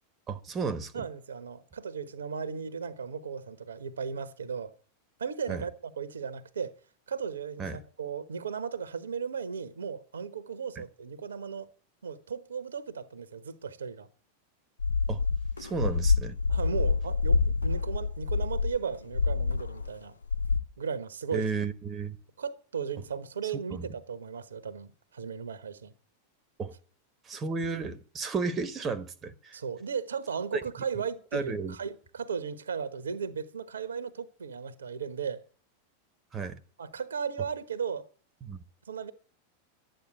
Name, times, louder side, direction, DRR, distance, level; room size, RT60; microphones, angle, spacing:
voice 1, 0.3-1.1 5.5-5.6 7.6-7.8 10.8-10.9 15.1-15.2 15.6-16.4 21.3-22.2 23.7-23.9 26.6-26.7 27.2-29.6 30.5-30.6 31.3-31.7 36.3-36.6 38.4-38.6, right 4 dB, 25° right, 1.2 m, -33 dB
voice 2, 0.9-4.7 5.2-6.7 7.1-7.6 8.0-11.7 12.0-14.1 16.5-20.2 20.8-21.4 22.4-25.9 29.5-35.4 36.8-38.0 38.9-39.1, right 6 dB, 70° right, 1.2 m, -36 dB
sound 1, 14.8-20.0 20.2-20.6, left 4 dB, 75° left, 0.8 m, -27 dB
12.5 x 9.1 x 8.0 m
figure-of-eight pair, 90°, 0 cm